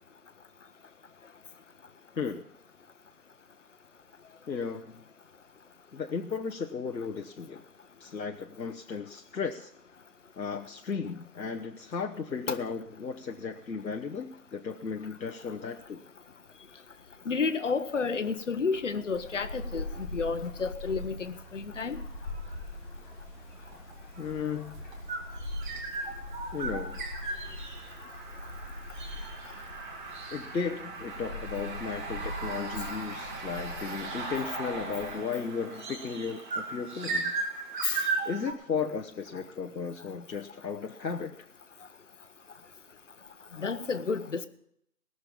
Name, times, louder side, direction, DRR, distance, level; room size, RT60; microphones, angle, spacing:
voice 1, 2.2-2.5 4.5-5.0 5.9-7.6 8.0-9.7 10.4-16.0 24.2-24.8 26.5-27.0 30.3-37.3 38.2-41.4, left 5 dB, 90° left, 3 dB, 1.1 m, -35 dB
voice 2, 17.2-22.0 37.8-38.1 43.5-44.5, left 5 dB, 45° left, 12 dB, 1.0 m, -31 dB
sound 1, 19.1-35.2, left 1 dB, ahead, 0.9 m, -42 dB
sound 2, 22.3-22.6 23.7-38.5, right 3 dB, 30° right, 2.3 m, -37 dB
19.0 x 6.7 x 7.1 m, 0.71 s
figure-of-eight pair, 160°, 50 cm